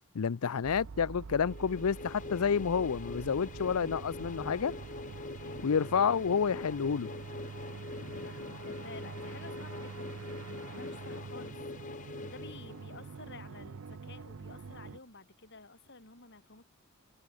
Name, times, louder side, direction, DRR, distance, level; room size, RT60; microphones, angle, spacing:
voice 1, 0.1-4.7 5.6-7.1 8.0-8.1, left 6 dB, 75° left, 0.5 m, -29 dB
sound 1, 0.6-15.0, right 4 dB, 65° right, 0.5 m, -46 dB
sound 2, 1.4-13.2, left 3 dB, 35° left, 0.7 m, -44 dB
voice 2, 8.1-16.6, left 3 dB, 50° left, 3.9 m, -52 dB
head